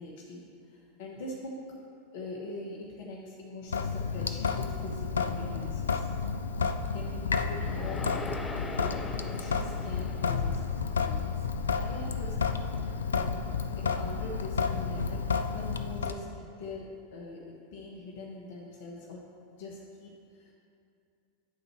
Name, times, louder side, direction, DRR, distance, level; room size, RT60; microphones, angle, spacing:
voice 1, 0.0-1.6 2.1-6.1 6.9-11.4 11.7-13.3 13.8-19.2 19.6-20.5, left 2 dB, 60° left, -2 dB, 0.9 m, -43 dB
Sink (filling or washing) / Drip, 3.7-16.1, left 5 dB, 85° left, 0.3 m, -31 dB
sound 1, 6.8-11.1, left 2 dB, 15° left, 0.5 m, -41 dB
9.4 x 3.9 x 4.5 m, 2.4 s
hypercardioid pair, 90°, 0 cm